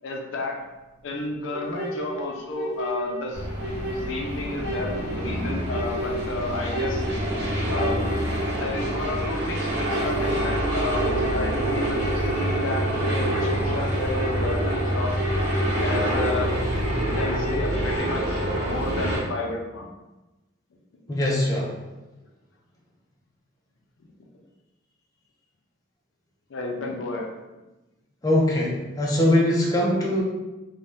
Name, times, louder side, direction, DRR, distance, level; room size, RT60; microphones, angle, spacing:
voice 1, 0.0-0.6 1.0-3.4 3.9-7.1 7.7-8.0 8.5-15.1 15.8-16.5 16.9-19.9 26.5-27.3, left 2 dB, 70° left, 0 dB, 0.5 m, -32 dB
sound 1, 1.5-18.0, right 1 dB, 90° right, 0.8 m, -33 dB
sound 2, 3.3-19.2, right 1 dB, 60° right, 1.0 m, -26 dB
voice 2, 21.1-21.7 28.2-30.2, left 1 dB, 20° left, -4 dB, 0.5 m, -22 dB
2.6 x 2.2 x 3.4 m, 1.1 s
head